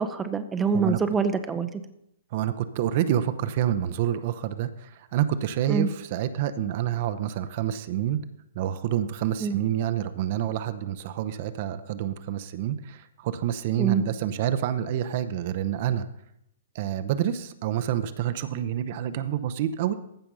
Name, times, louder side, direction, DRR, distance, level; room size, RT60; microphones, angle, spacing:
voice 1, 0.0-1.7 5.7-5.9 9.4-9.6 13.8-14.0, right 5 dB, 15° right, 10 dB, 0.7 m, -25 dB
voice 2, 2.3-8.2 8.5-16.1 16.7-19.9, right 11 dB, 45° right, 11 dB, 0.8 m, -28 dB
14.5 x 5.8 x 5.5 m, 0.77 s
figure-of-eight pair, 115°, 0 cm